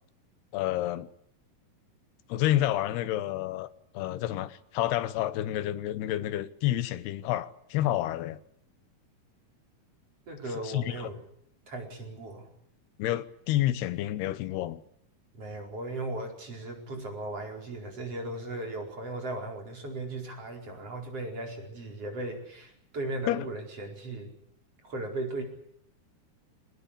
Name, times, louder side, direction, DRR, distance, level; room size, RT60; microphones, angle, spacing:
voice 1, 0.5-1.1 2.3-8.4 10.6-11.0 13.0-14.8 23.3-23.5, left 13 dB, 85° left, 3.1 m, -29 dB
voice 2, 10.3-11.2 11.7-12.5 15.3-24.3 24.8-25.4, right 2 dB, 40° right, 5.6 m, -37 dB
24.5 x 19.5 x 8.6 m
omnidirectional pair, 4.5 m